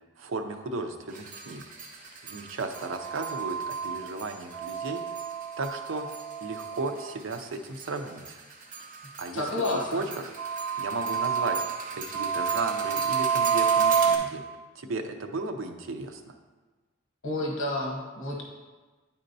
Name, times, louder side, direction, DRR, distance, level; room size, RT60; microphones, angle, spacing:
voice 1, 0.2-1.6 2.2-5.0 5.6-8.4 9.2-9.4 9.9-10.3 10.8-11.6 11.9-14.4 14.7-16.4, right 3 dB, 90° right, 6 dB, 0.6 m, -35 dB
sound 1, 1.1-7.4 7.7-14.2, right 6 dB, 45° right, 0.9 m, -29 dB
voice 2, 9.3-10.1 17.2-18.4, left 2 dB, 80° left, -1 dB, 1.1 m, -30 dB
10.0 x 4.3 x 2.7 m, 1.3 s
head